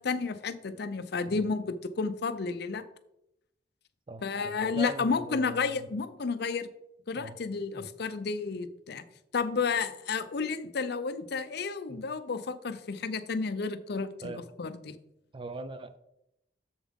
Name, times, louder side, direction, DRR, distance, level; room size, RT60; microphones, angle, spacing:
voice 1, 0.0-2.8 4.2-6.7 7.1-9.0 9.3-14.9, left 4 dB, 60° left, 11 dB, 0.6 m, -31 dB
voice 2, 4.1-5.9 7.2-7.4 7.7-7.9 11.9-12.1 14.2-14.4 15.3-16.0, right 2 dB, 30° right, 11 dB, 0.5 m, -41 dB
7.3 x 7.1 x 3.6 m, 0.81 s
head